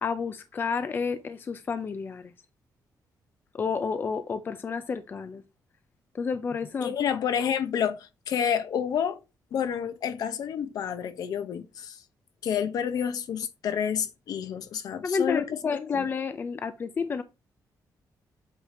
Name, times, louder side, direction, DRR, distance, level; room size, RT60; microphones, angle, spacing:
voice 1, 0.0-2.3 3.5-5.4 6.1-6.9 15.0-17.2, left 5 dB, 30° left, 0.5 m, -30 dB
voice 2, 6.8-9.2 9.5-12.0 12.4-15.6 15.9-16.1, left 8 dB, 65° left, 0.9 m, -29 dB
8.3 x 2.8 x 4.9 m
wide cardioid pair, 165°, 7 cm